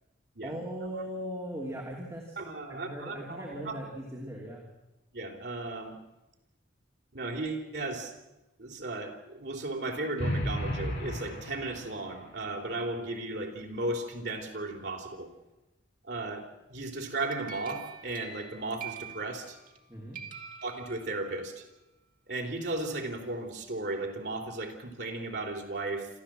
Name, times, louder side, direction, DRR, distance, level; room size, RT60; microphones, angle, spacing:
voice 1, 0.4-2.4 2.7-4.7 19.9-20.2, equal, 15° right, -3 dB, 2.9 m, -39 dB
voice 2, 2.4-3.8 5.1-6.0 7.1-8.1 8.6-15.3 16.0-19.6 20.6-21.6 22.3-26.1, right 2 dB, 60° right, 1 dB, 3.6 m, -35 dB
sound 1, 10.2-12.2, equal, 55° left, 5.8 m, -33 dB
sound 2, 17.0-19.8 20.1-21.4, right 7 dB, 45° right, 2.0 m, -45 dB
27.0 x 14.0 x 7.6 m, 0.98 s
head